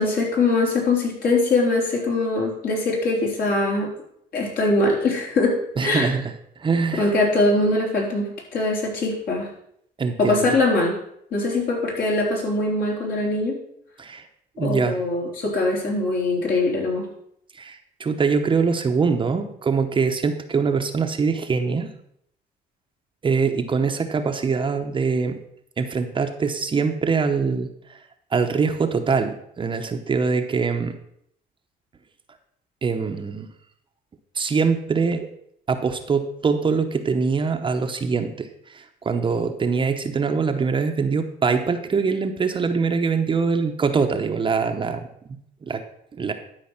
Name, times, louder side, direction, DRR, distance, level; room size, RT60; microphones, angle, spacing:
voice 1, 0.0-3.9 4.3-6.1 6.9-9.5 10.2-11.0 11.3-13.6 14.6-17.0, left 2 dB, 60° left, -2 dB, 4.0 m, -22 dB
voice 2, 5.8-6.2 6.6-7.1 10.0-10.5 14.0-14.2 14.6-15.0 17.6-21.9 23.2-25.4 25.8-27.7 28.3-31.0 32.8-33.5 34.4-35.3 35.7-38.5 38.7-45.0 45.7-45.8 46.2-46.3, right 5 dB, 30° right, 6 dB, 0.9 m, -23 dB
12.0 x 5.1 x 5.9 m, 0.71 s
cardioid pair, 110°, 17 cm